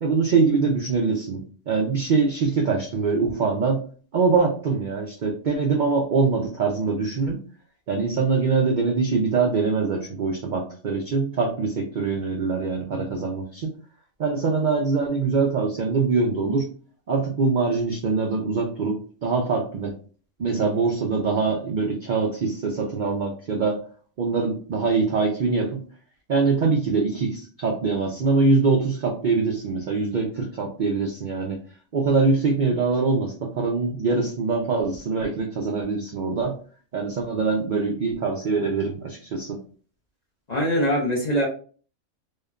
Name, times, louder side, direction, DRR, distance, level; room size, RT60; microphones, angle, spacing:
voice 1, 0.0-3.8 4.1-7.4 7.9-13.7 14.2-16.7 17.1-19.9 20.4-23.8 24.2-25.8 26.3-31.6 31.9-36.6 36.9-39.6, right 4 dB, 80° right, 1 dB, 0.4 m, -23 dB
voice 2, 40.5-41.5, equal, 45° left, -3 dB, 0.6 m, -22 dB
3.1 x 2.1 x 2.3 m, 0.41 s
omnidirectional pair, 1.4 m